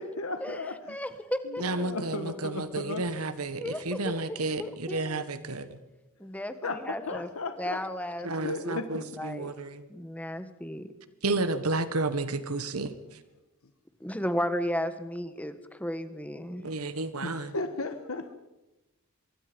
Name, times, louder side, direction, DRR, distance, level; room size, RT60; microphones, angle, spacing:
voice 1, 0.0-1.0 1.4-3.0 6.6-7.8 8.4-9.1 17.2-18.3, left 2 dB, 80° left, 8 dB, 1.5 m, -35 dB
voice 2, 0.9-1.6 3.6-5.2 6.2-7.3 7.6-9.5 9.9-10.9 14.0-16.6, equal, 5° left, 10 dB, 1.3 m, -34 dB
voice 3, 1.6-5.7 8.2-9.8 11.2-12.9 16.6-17.5, right 2 dB, 90° right, 11 dB, 1.6 m, -31 dB
24.5 x 23.0 x 5.3 m, 0.98 s
head